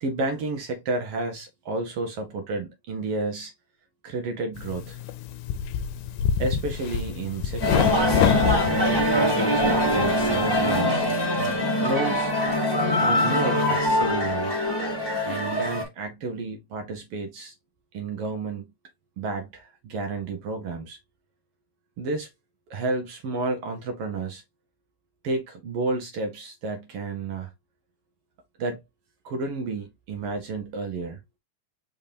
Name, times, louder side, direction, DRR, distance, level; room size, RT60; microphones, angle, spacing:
voice 1, 0.0-3.5 4.0-5.0 6.4-11.1 11.8-12.3 13.0-14.5 15.2-17.5 17.9-18.7 19.2-21.0 22.0-22.3 22.7-24.4 25.2-27.5 28.6-28.8 29.2-31.2, right 3 dB, 65° right, 1.6 m, -31 dB
sound 1, 4.5-10.8, left 8 dB, 90° left, 2.1 m, -28 dB
sound 2, 7.6-15.8, left 1 dB, 10° left, 1.2 m, -23 dB
5.3 x 3.4 x 2.8 m
omnidirectional pair, 3.5 m